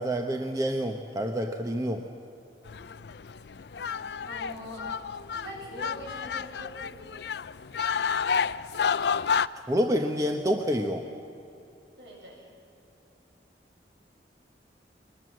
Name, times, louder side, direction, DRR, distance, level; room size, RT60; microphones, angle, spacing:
voice 1, 0.0-2.0 9.7-11.1, equal, 20° right, 4 dB, 1.0 m, -28 dB
sound 1, 2.7-9.5, left 6 dB, 70° left, 0.5 m, -30 dB
voice 2, 4.3-4.9 5.3-6.9 12.0-12.5, equal, 70° right, -2 dB, 8.0 m, -42 dB
22.5 x 20.5 x 7.6 m, 2.8 s
head